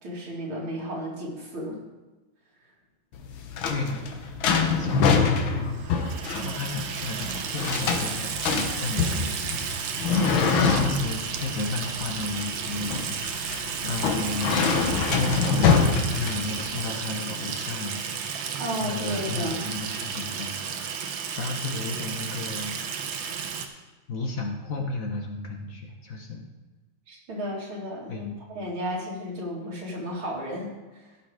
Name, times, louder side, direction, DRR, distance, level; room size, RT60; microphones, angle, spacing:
voice 1, 0.0-1.8 18.6-19.6 27.1-31.1, equal, 85° right, -3 dB, 3.2 m, -33 dB
sound 1, 3.1-16.8, left 5 dB, 75° left, 1.8 m, -25 dB
voice 2, 3.7-10.1 10.3-20.9 21.4-22.8 24.1-26.4 28.1-28.4, left 3 dB, 50° left, 2 dB, 1.4 m, -33 dB
Water tap faucet / Sink (filling or washing), 5.8-23.7, right 7 dB, 70° right, 1.5 m, -33 dB
15.0 x 5.8 x 5.0 m, 1.2 s
omnidirectional pair, 2.2 m